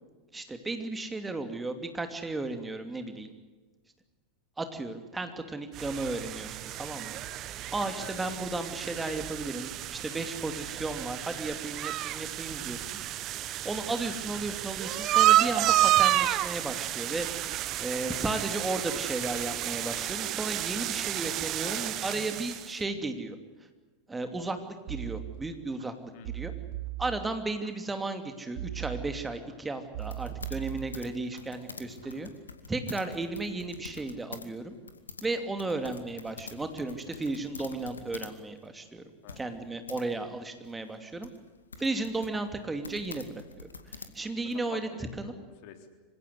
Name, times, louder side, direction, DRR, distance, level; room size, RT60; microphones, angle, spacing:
voice 1, 0.3-3.3 4.6-7.2 7.7-12.8 13.6-17.3 17.8-23.4 24.1-25.9 26.3-26.5 27.0-32.3 32.7-34.7 35.2-39.0 39.4-41.3 41.8-43.3 43.6-44.8 45.2-45.3, right 2 dB, 10° right, 8 dB, 2.8 m, -34 dB
sound 1, 5.7-22.7, right 13 dB, 40° right, 1.2 m, -30 dB
voice 2, 21.6-22.3 26.1-26.5 33.5-33.6 35.7-36.0 39.2-39.5 44.4-45.9, left 8 dB, 55° left, 7 dB, 3.6 m, -48 dB
sound 2, 24.9-25.8 26.2-27.7 28.6-29.5 29.9-31.4 31.8-32.2, right 15 dB, 55° right, 4.0 m, -39 dB
sound 3, 30.0-34.5 34.7-38.4 38.6-38.7 39.3-40.0 40.6-44.5, left 4 dB, 80° left, 2.3 m, -46 dB
26.0 x 17.0 x 9.8 m, 1.3 s
figure-of-eight pair, 85°, 0 cm